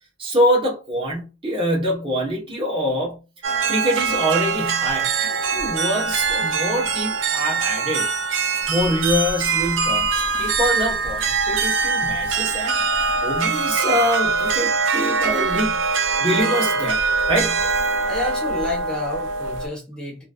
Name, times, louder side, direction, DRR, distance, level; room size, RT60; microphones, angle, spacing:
voice 1, 0.2-3.2 3.7-8.1 8.7-12.8 13.2-17.0 17.3-17.6, equal, 25° right, 1.2 m, -24 dB
sound 1, 3.4-19.7, right 4 dB, 75° right, 0.5 m, -23 dB
voice 2, 18.0-20.2, left 2 dB, 5° left, 1.2 m, -29 dB
3.0 x 2.7 x 2.4 m
head